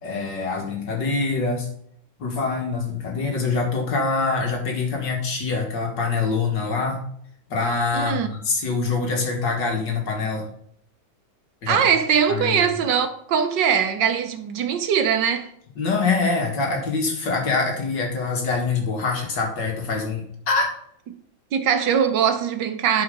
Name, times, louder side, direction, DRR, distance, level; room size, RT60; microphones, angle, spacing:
voice 1, 0.0-1.7 2.2-7.0 7.5-10.5 11.6-11.8 12.3-12.8 15.8-20.7, left 4 dB, 65° left, 2.5 m, -24 dB
voice 2, 7.9-8.3 11.7-15.5 21.5-23.0, right 7 dB, 70° right, 1.5 m, -21 dB
11.0 x 5.0 x 5.4 m
omnidirectional pair, 2.1 m